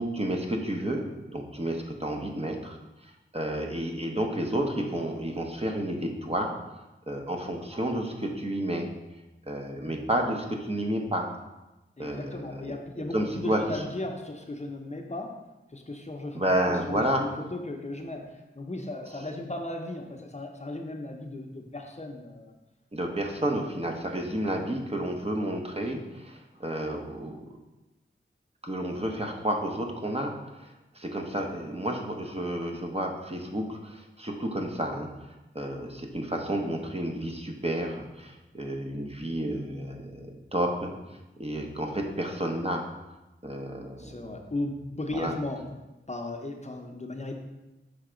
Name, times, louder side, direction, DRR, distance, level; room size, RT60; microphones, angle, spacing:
voice 1, 0.0-2.8 3.3-6.5 7.1-8.9 9.5-11.3 12.0-12.7 13.1-13.8 16.3-17.2 22.9-27.4 28.6-30.3 30.9-35.1 35.5-40.9 41.4-42.8 43.4-44.3 45.1-45.3, right 1 dB, 30° right, 1 dB, 0.8 m, -31 dB
voice 2, 12.0-15.4 15.7-22.6 43.9-45.8 46.1-47.3, left 2 dB, 35° left, 2 dB, 0.7 m, -36 dB
5.8 x 3.3 x 5.0 m, 1.0 s
wide cardioid pair, 50°, 21 cm